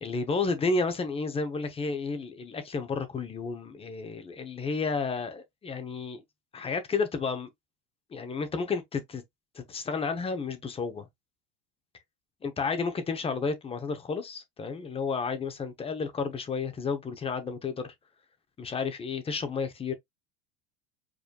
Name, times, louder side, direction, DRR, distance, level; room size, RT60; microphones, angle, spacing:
voice 1, 0.0-6.2 6.5-7.5 8.1-9.2 9.5-11.1 12.4-17.9 18.6-19.9, left 4 dB, 20° left, 0.9 m, -31 dB
4.9 x 3.1 x 2.3 m
supercardioid pair, 130°, 31 cm